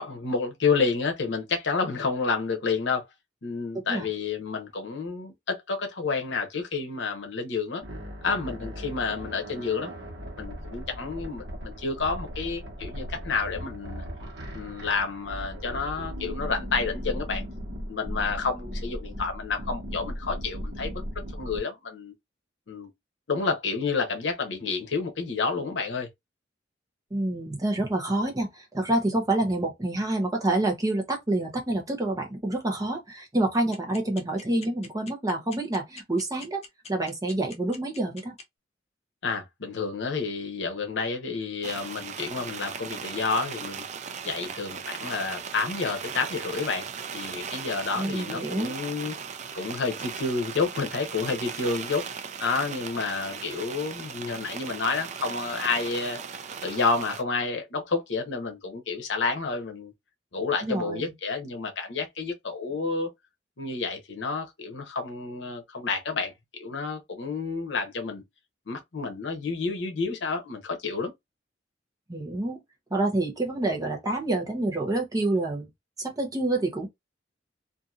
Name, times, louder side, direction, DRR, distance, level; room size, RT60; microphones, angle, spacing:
voice 1, 0.0-3.0 3.4-7.8 8.2-9.9 10.4-14.0 14.5-17.4 17.9-22.1 22.7-22.9 23.3-26.1 39.2-43.8 44.2-46.9 47.1-49.2 49.5-52.0 52.4-56.2 56.6-59.9 60.3-63.1 63.6-68.2 68.7-71.1, left 4 dB, 75° left, 0.8 m, -30 dB
sound 1, 7.8-21.6, equal, 65° right, 1.1 m, -37 dB
voice 2, 27.1-36.6 36.9-38.3 48.0-48.7 60.6-61.1 72.1-72.6 72.9-75.7 76.0-76.9, right 2 dB, 20° right, 0.7 m, -27 dB
sound 2, 33.7-38.4, left 4 dB, 35° left, 0.7 m, -43 dB
sound 3, 41.6-57.2, right 6 dB, 40° right, 0.4 m, -38 dB
2.7 x 2.5 x 2.4 m
head